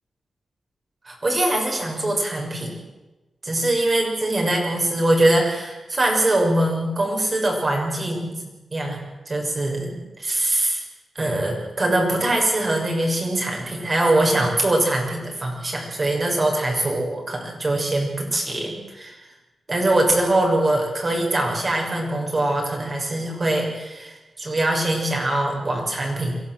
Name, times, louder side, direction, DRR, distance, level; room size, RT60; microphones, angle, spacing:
voice 1, 1.0-2.9 3.4-8.4 8.7-9.0 9.3-10.8 11.1-19.2 19.7-26.4, right 1 dB, 35° right, 1 dB, 6.3 m, -22 dB
23.0 x 16.0 x 7.9 m, 1.1 s
wide cardioid pair, 110°, 0 cm